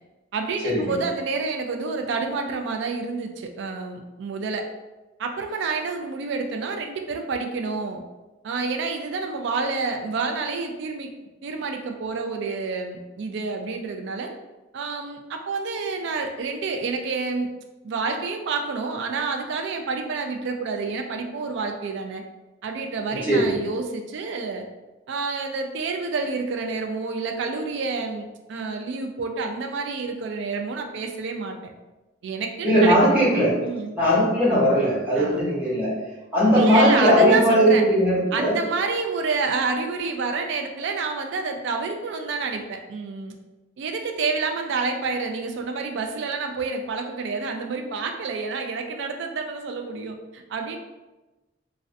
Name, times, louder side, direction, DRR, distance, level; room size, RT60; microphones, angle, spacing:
voice 1, 0.3-4.7 5.2-8.0 8.4-11.1 11.4-14.3 14.7-17.5 17.8-22.2 22.6-24.6 25.1-31.7 32.2-32.9 33.6-33.9 35.2-35.4 36.5-37.8 38.3-43.3 43.8-50.8, right 4 dB, 65° right, 4 dB, 0.3 m, -28 dB
voice 2, 32.6-33.6 33.9-35.9 36.3-38.6, equal, 10° right, -9 dB, 0.9 m, -18 dB
2.4 x 2.1 x 2.5 m, 1.1 s
head